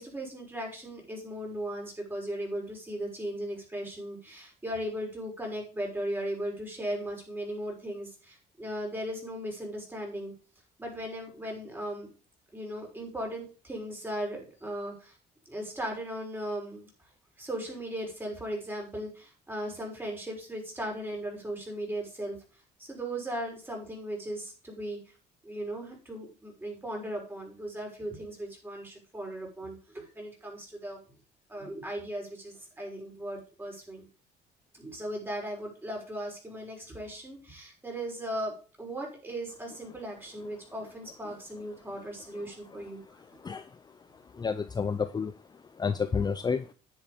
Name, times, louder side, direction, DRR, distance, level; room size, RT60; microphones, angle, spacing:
voice 1, 0.0-10.3 10.8-12.1 12.5-15.2 15.5-16.9 17.4-22.4 22.8-25.1 25.4-31.0 31.5-34.1 34.7-43.0, right 1 dB, 10° right, 0 dB, 6.0 m, -37 dB
voice 2, 43.4-43.7 44.1-45.3 45.8-46.7, left 5 dB, 25° left, 10 dB, 0.7 m, -30 dB
10.5 x 7.2 x 5.2 m, 0.36 s
cardioid pair, 110°, 17 cm